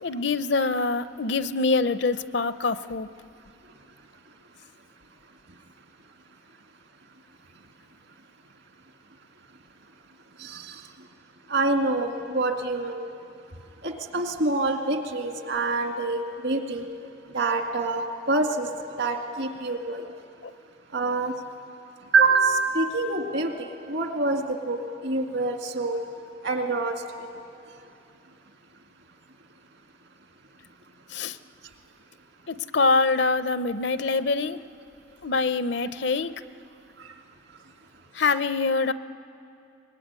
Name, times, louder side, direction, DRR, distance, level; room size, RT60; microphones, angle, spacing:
voice 1, 0.0-3.1 31.1-31.4 32.5-34.6 35.2-36.3 38.1-38.9, left 3 dB, 65° left, 13 dB, 0.7 m, -24 dB
voice 2, 10.4-10.7 11.5-13.0 13.8-16.8 17.3-18.0 18.3-18.7 19.0-20.1 20.9-21.3 22.1-24.8 25.0-26.0 26.4-27.0 27.2-27.3, right 3 dB, 70° right, 3 dB, 2.2 m, -26 dB
24.5 x 21.5 x 9.7 m, 2.6 s
head